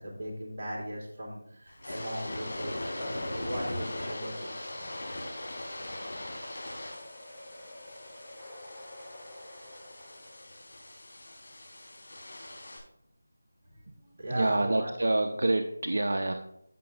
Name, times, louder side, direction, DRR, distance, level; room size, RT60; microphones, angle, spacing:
voice 1, 0.0-5.0 13.6-14.9, right 1 dB, 35° right, -5 dB, 3.0 m, -38 dB
sound 1, 1.7-12.8, left 1 dB, 65° left, 3.6 m, -41 dB
sound 2, 2.0-10.8, left 1 dB, 10° left, 3.1 m, -48 dB
voice 2, 14.3-16.3, right 2 dB, 65° right, 6 dB, 0.7 m, -27 dB
15.5 x 6.1 x 2.4 m, 0.76 s
figure-of-eight pair, 170°, 0 cm